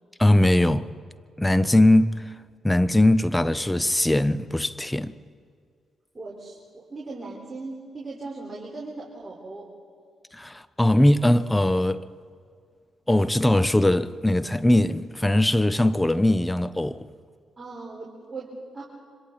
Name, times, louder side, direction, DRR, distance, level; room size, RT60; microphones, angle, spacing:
voice 1, 0.2-0.9 1.4-2.2 2.6-5.1 10.3-12.0 13.1-17.1, left 1 dB, 10° left, 0.9 m, -20 dB
voice 2, 6.1-9.7 17.6-18.8, right 3 dB, 30° right, 4.8 m, -38 dB
27.0 x 25.5 x 4.2 m
hypercardioid pair, 45°, 0 cm